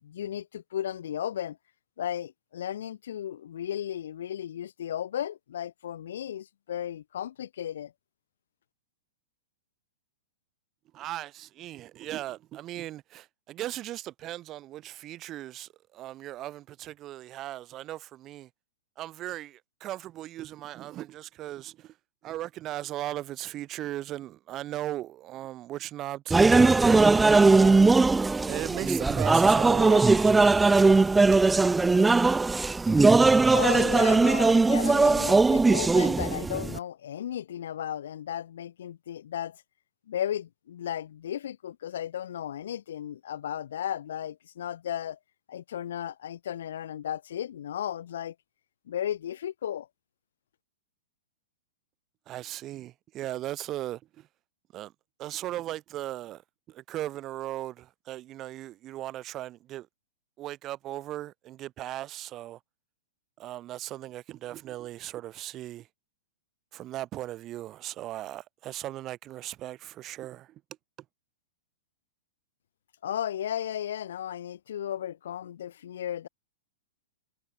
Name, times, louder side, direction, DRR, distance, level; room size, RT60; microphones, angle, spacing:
voice 1, 0.0-1.6 2.0-7.9 33.5-39.6 40.1-45.2 45.5-48.3 48.9-49.9 73.0-76.3, left 10 dB, 65° left, 4.3 m, -34 dB
voice 2, 10.9-18.5 19.0-21.9 22.2-27.8 28.5-31.8 52.3-54.3 54.7-54.9 55.2-56.4 56.7-59.9 60.4-62.6 63.4-65.9 66.7-70.5, right 14 dB, 30° right, 4.5 m, -37 dB
sound 1, 26.3-36.8, right 3 dB, 10° right, 0.6 m, -20 dB
hypercardioid pair, 110°, 0 cm